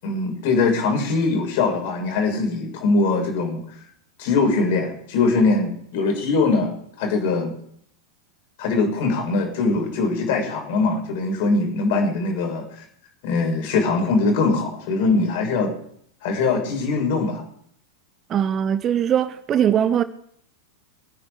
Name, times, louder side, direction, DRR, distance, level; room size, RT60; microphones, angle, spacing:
voice 1, 0.0-3.6 4.2-7.5 8.6-12.8 13.2-15.7 16.2-17.4, left 3 dB, 50° left, 6.4 m, -22 dB
voice 2, 18.3-20.0, right 9 dB, 30° right, 0.9 m, -20 dB
26.0 x 9.9 x 5.2 m
figure-of-eight pair, 90°, 0 cm